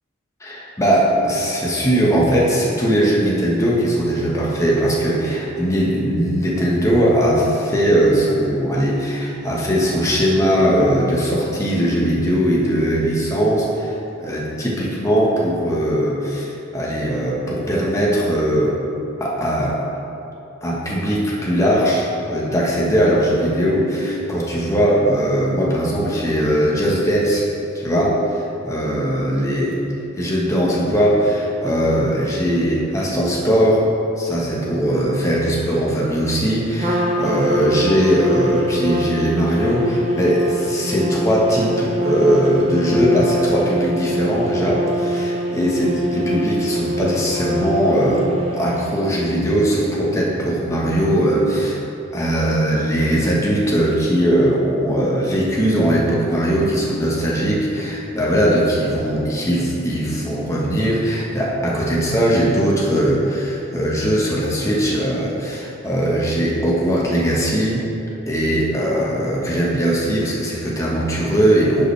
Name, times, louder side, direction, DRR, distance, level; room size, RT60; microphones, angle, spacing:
voice 1, 0.4-18.8 19.2-19.9 20.6-27.4 27.7-29.8 30.2-33.9 34.2-51.8 52.1-67.9 68.3-71.9, equal, 15° left, -5 dB, 1.2 m, -19 dB
Trumpet, 36.8-48.9, equal, 30° right, 0.9 m, -24 dB
10.5 x 5.4 x 3.4 m, 2.9 s
head